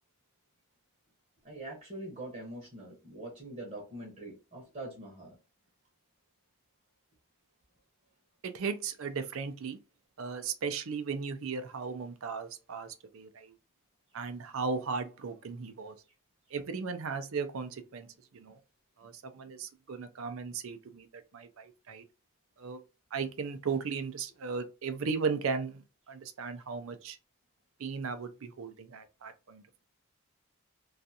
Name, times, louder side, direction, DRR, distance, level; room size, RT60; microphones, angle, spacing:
voice 1, 1.4-5.4, right 1 dB, 35° right, 0.8 m, -43 dB
voice 2, 8.4-9.8 10.2-13.5 14.1-16.0 16.5-18.1 18.3-18.6 19.0-22.0 22.6-22.8 23.1-27.2 27.8-29.8, right 5 dB, 70° right, 0.5 m, -36 dB
2.5 x 2.3 x 2.7 m
head